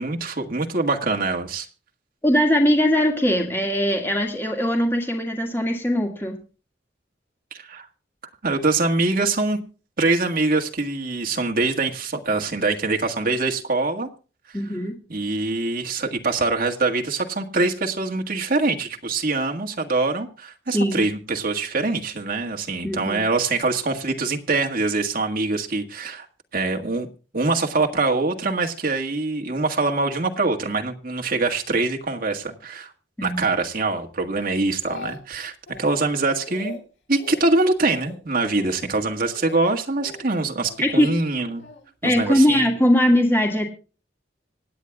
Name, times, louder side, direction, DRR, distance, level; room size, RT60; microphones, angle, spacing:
voice 1, 0.0-1.7 7.5-7.9 8.4-9.6 10.0-14.1 15.1-26.3 26.5-27.1 27.3-32.9 33.2-36.8 37.1-41.6 42.0-42.7, right 3 dB, 50° right, 2 dB, 1.8 m, -24 dB
voice 2, 2.2-6.4 14.5-14.9 20.7-21.0 22.8-23.2 33.2-33.4 40.8-41.1 42.0-43.7, equal, 10° left, 2 dB, 1.9 m, -20 dB
Speech, 34.4-35.4 35.7-36.1 36.4-36.8 37.2-37.5 37.8-38.2 38.5-38.8 39.3-39.6 40.0-40.8 41.6-41.8, left 3 dB, 85° left, 4.9 m, -40 dB
26.0 x 9.3 x 2.3 m, 0.36 s
head